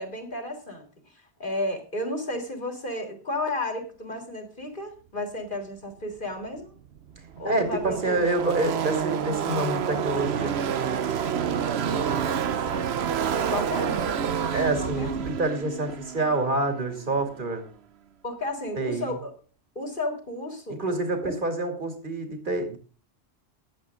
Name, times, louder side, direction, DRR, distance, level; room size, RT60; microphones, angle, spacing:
voice 1, 0.0-6.7 7.4-8.2 12.7-13.0 13.5-14.3 14.8-15.3 18.2-19.3 19.8-21.0 21.2-21.4, left 1 dB, 50° left, 3 dB, 3.8 m, -33 dB
Car passing by / Race car auto racing, 6.6-6.7 6.9-17.4, right 7 dB, 70° right, 1.0 m, -29 dB
voice 2, 7.4-10.5 14.5-17.6 18.8-19.1 20.8-22.8, right 2 dB, 50° right, 5 dB, 3.0 m, -27 dB
17.0 x 11.0 x 3.7 m, 0.38 s
omnidirectional pair, 1.1 m